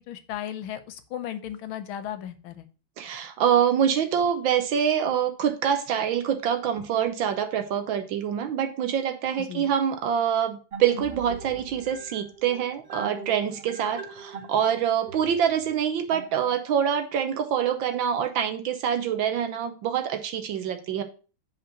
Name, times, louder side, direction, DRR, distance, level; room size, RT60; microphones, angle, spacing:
voice 1, 0.1-2.6 9.4-9.7, left 10 dB, 75° left, 1.6 m, -35 dB
voice 2, 3.0-21.0, right 8 dB, 70° right, 1.4 m, -25 dB
sound 1, 10.7-16.9, right 4 dB, 45° right, 0.9 m, -42 dB
5.4 x 5.2 x 6.1 m
omnidirectional pair, 2.3 m